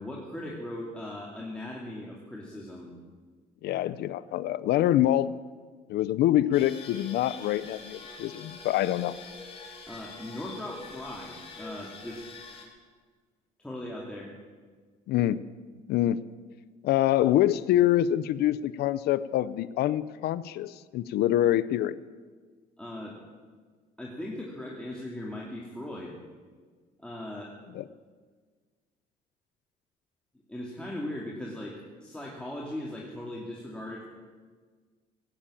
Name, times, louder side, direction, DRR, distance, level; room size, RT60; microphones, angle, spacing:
voice 1, 0.0-2.9 9.9-12.2 13.6-14.3 22.8-23.2 24.0-26.1 27.0-27.5 30.5-34.0, left 1 dB, 5° left, -3 dB, 2.3 m, -38 dB
voice 2, 3.6-5.4 5.9-9.1 15.1-15.4 15.9-16.2 16.8-22.0 27.7-27.9, left 13 dB, 70° left, 17 dB, 0.5 m, -25 dB
sound 1, 6.5-12.6, left 4 dB, 35° left, 3.3 m, -45 dB
18.0 x 9.0 x 8.5 m, 1.5 s
cardioid pair, 110°, 17 cm